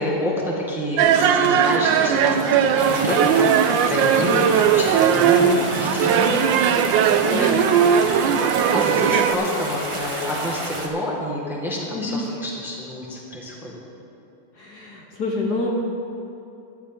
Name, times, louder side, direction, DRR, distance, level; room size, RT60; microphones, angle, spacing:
voice 1, 0.0-5.5 5.8-6.5 8.0-8.2 8.7-13.8, left 1 dB, ahead, -3 dB, 1.4 m, -28 dB
sound 1, 1.0-9.3, right 8 dB, 75° right, 1.2 m, -18 dB
sound 2, 2.8-10.9, right 1 dB, 35° right, 0.4 m, -30 dB
voice 2, 4.2-4.5 5.3-6.3 6.7-7.6 8.0-8.2 11.9-12.5 14.5-15.7, left 2 dB, 55° left, -1 dB, 1.4 m, -29 dB
14.5 x 11.0 x 3.7 m, 3.0 s
omnidirectional pair, 2.3 m